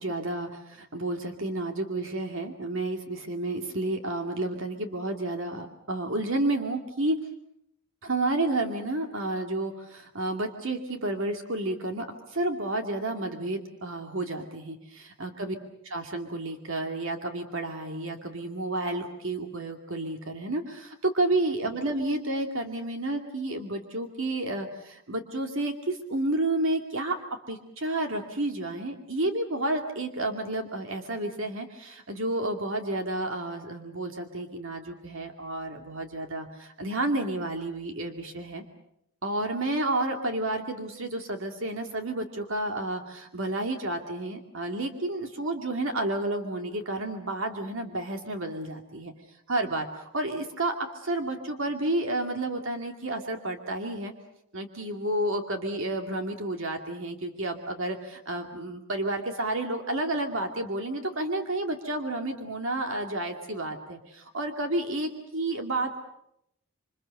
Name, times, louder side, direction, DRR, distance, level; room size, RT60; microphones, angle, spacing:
voice 1, 0.0-7.2 8.0-15.6 15.8-27.2 27.5-38.6 39.2-49.1 49.5-54.1 54.5-66.0, right 2 dB, 60° right, 4 dB, 2.4 m, -31 dB
27.5 x 25.5 x 6.5 m, 0.77 s
head